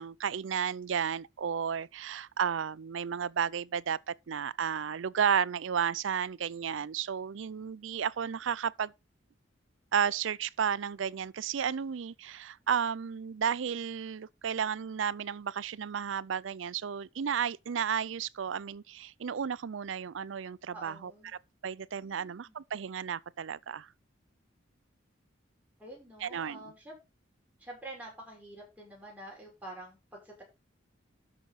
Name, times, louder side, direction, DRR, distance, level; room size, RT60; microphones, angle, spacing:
voice 1, 0.0-8.9 9.9-21.1 21.6-23.9 26.2-26.7, right 7 dB, 75° right, 0.5 m, -33 dB
voice 2, 20.7-21.3 22.0-22.6 25.8-26.9 27.6-30.4, right 1 dB, 10° right, 5.9 m, -47 dB
12.5 x 6.1 x 4.1 m
head